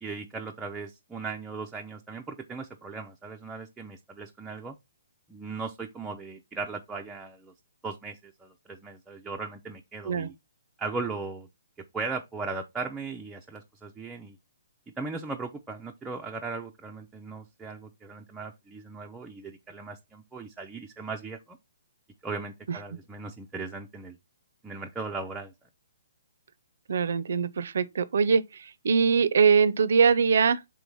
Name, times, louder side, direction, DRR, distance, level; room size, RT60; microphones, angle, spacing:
voice 1, 0.0-4.7 5.3-7.5 7.8-10.3 10.8-11.5 11.9-14.4 15.0-21.6 22.2-24.2 24.6-25.5, right 4 dB, 5° right, 0.4 m, -38 dB
voice 2, 26.9-30.6, right 6 dB, 65° right, 0.5 m, -22 dB
4.6 x 3.7 x 5.4 m
hypercardioid pair, 170°, 0 cm